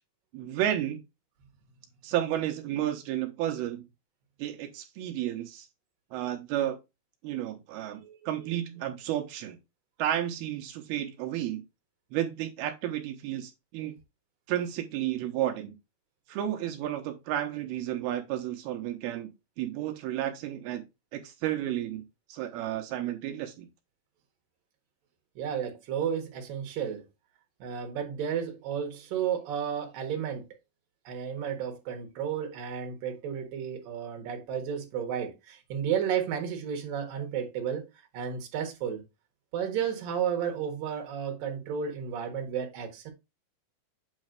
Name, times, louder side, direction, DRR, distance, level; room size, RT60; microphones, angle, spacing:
voice 1, 0.3-1.0 2.0-3.8 4.4-5.7 6.1-6.8 7.2-9.6 10.0-11.6 12.1-14.0 14.5-15.7 16.3-19.3 19.6-20.8 21.1-22.0 22.3-23.7, right 12 dB, 90° right, 2.9 m, -32 dB
voice 2, 25.4-27.0 27.6-30.5 31.1-37.9 38.1-39.0 39.5-43.1, right 8 dB, 70° right, 3.2 m, -32 dB
8.5 x 3.2 x 5.2 m
omnidirectional pair, 4.3 m